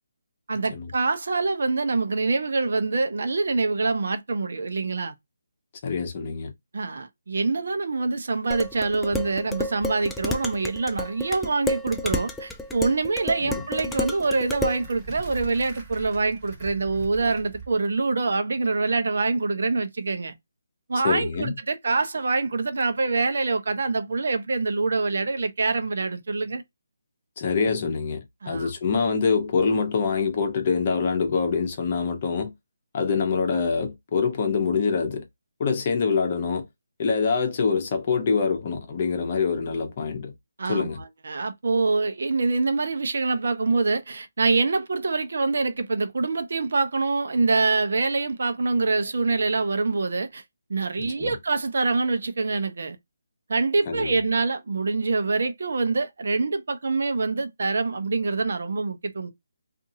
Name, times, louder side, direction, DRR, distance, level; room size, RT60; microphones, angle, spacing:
voice 1, 0.5-5.1 6.7-20.4 20.9-26.6 28.4-28.7 40.6-50.4 50.7-53.0 53.5-59.3, right 3 dB, 65° right, 0.7 m, -25 dB
voice 2, 5.8-6.5 13.4-13.6 21.0-21.6 27.4-32.5 32.9-35.2 35.6-36.7 37.0-40.3 40.7-41.0 51.0-51.3 53.9-54.2, left 5 dB, 35° left, 0.8 m, -25 dB
Dishes pots and pans, 8.5-14.8, left 2 dB, 5° left, 0.3 m, -31 dB
sound 1, 12.1-17.7, right 4 dB, 15° right, 1.4 m, -43 dB
2.7 x 2.6 x 2.7 m
hypercardioid pair, 165°, 0 cm